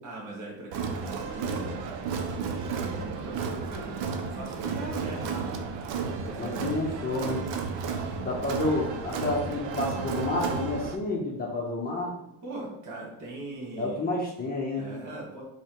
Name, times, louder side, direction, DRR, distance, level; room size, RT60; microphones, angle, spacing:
voice 1, 0.0-5.5 6.1-6.7 8.1-8.6 12.4-14.0 14.7-15.4, right 2 dB, 40° right, -3 dB, 1.5 m, -41 dB
Crowd, 0.7-10.9, right 5 dB, 70° right, 0.7 m, -33 dB
voice 2, 6.4-7.5 8.1-12.2 13.8-14.9, left 2 dB, 20° left, -3 dB, 0.9 m, -30 dB
3.5 x 3.3 x 4.4 m, 0.81 s
cardioid pair, 130°, 46 cm